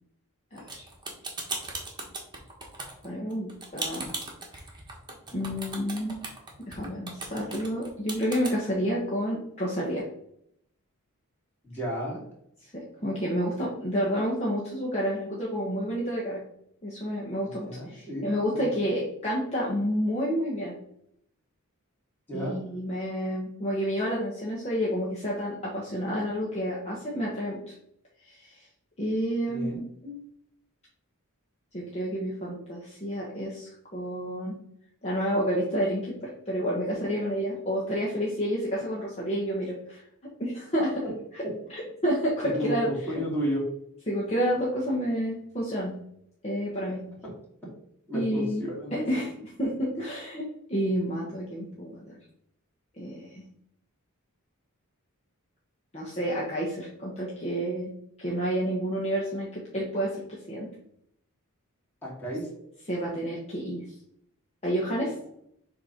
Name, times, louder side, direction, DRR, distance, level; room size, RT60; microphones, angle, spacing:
voice 1, 0.5-0.9 3.0-4.1 5.3-6.2 6.7-10.0 12.7-16.4 16.8-20.7 22.3-27.6 28.2-28.6 29.0-30.2 31.7-34.5 35.0-40.0 40.4-41.0 41.3-41.4 41.7-43.2 44.1-45.9 46.4-47.0 48.1-48.6 48.9-49.3 49.6-52.1 53.0-53.5 55.9-57.9 58.2-60.7 62.9-63.8 64.6-65.1, equal, 30° left, -5 dB, 1.3 m, -30 dB
sound 1, 0.6-8.5, right 3 dB, 20° right, 1.3 m, -37 dB
voice 2, 11.6-12.2 17.5-18.7 22.3-22.6 29.5-29.8 41.4-41.5 42.4-43.6 47.2-47.3 48.1-49.1 62.0-62.5, right 1 dB, 10° left, -6 dB, 2.6 m, -33 dB
6.9 x 3.0 x 5.2 m, 0.72 s
head